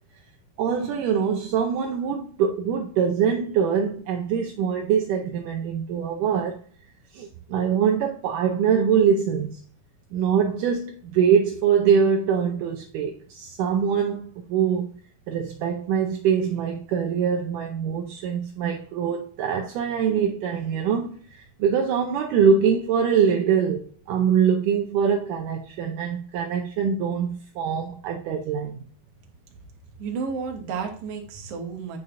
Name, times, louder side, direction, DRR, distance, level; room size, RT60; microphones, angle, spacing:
voice 1, 0.6-6.6 7.1-9.6 10.1-14.9 15.3-28.9, right 7 dB, 80° right, 2.0 m, -23 dB
voice 2, 30.0-32.0, right 5 dB, 60° right, 1.7 m, -32 dB
7.8 x 5.4 x 2.5 m
omnidirectional pair, 4.2 m